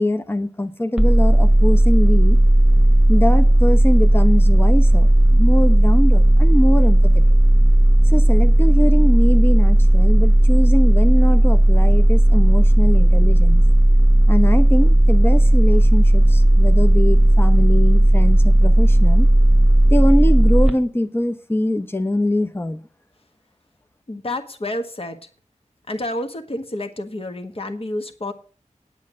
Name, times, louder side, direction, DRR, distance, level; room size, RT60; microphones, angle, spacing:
voice 1, 0.0-2.4 3.1-7.2 8.0-13.6 14.3-19.3 19.9-22.8, left 1 dB, 15° left, 0.8 m, -23 dB
sound 1, 1.0-20.7, right 1 dB, 5° right, 1.4 m, -13 dB
voice 2, 24.1-25.2 25.9-28.3, left 1 dB, 50° left, 1.5 m, -29 dB
9.7 x 8.1 x 6.3 m
wide cardioid pair, 60°, 13 cm